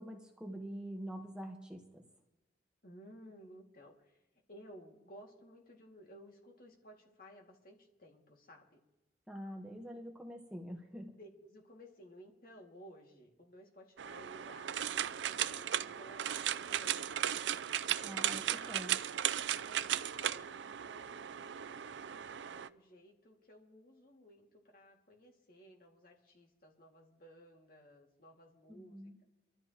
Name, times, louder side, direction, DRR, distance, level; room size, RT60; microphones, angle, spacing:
voice 1, 0.0-2.0 9.3-11.1 18.0-18.9 28.7-29.1, equal, 5° right, 1 dB, 1.1 m, -45 dB
voice 2, 2.8-4.2 4.5-8.8 11.1-18.0 18.5-29.2, equal, 50° left, 0 dB, 2.2 m, -57 dB
sound 1, 14.0-22.7, right 10 dB, 85° right, 0.4 m, -36 dB
24.5 x 13.0 x 2.9 m, 0.97 s
head